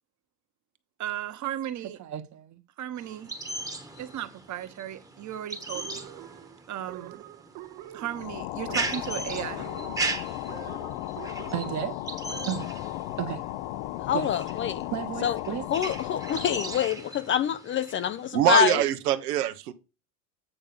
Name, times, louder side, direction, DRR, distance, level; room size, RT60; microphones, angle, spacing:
voice 1, 1.0-3.3 4.0-6.1 6.7-7.2 7.9-9.6 11.5-12.0 12.4-12.7 13.2-13.4 14.1-14.3 14.9-15.7, right 11 dB, 40° right, 1.2 m, -34 dB
sound 1, 3.0-18.3, right 2 dB, 10° right, 1.2 m, -38 dB
sound 2, 5.7-12.8, right 14 dB, 60° right, 1.1 m, -45 dB
sound 3, 8.1-16.9, left 16 dB, 60° left, 0.7 m, -36 dB
voice 2, 14.1-14.9 15.2-15.4 15.7-18.8, left 9 dB, 30° left, 0.4 m, -26 dB
voice 3, 18.3-19.7, right 11 dB, 85° right, 1.0 m, -24 dB
8.8 x 3.6 x 6.8 m
supercardioid pair, 100°, 45 cm